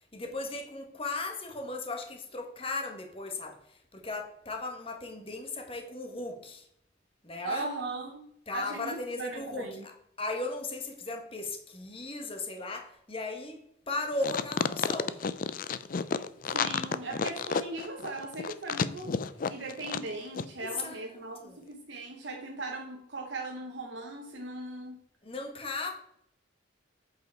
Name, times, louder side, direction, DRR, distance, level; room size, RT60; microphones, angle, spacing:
voice 1, 0.1-3.6 3.9-6.7 7.2-7.7 8.5-9.9 10.2-13.6 13.9-15.2 20.6-21.0 21.4-21.6 25.2-25.9, left 2 dB, 30° left, 1.4 m, -36 dB
voice 2, 7.4-9.9 16.5-19.1 19.5-25.0, right 2 dB, 65° right, 1.1 m, -39 dB
sound 1, 14.2-20.1 20.3-20.5, left 5 dB, 45° left, 0.4 m, -31 dB
8.1 x 5.0 x 4.5 m
head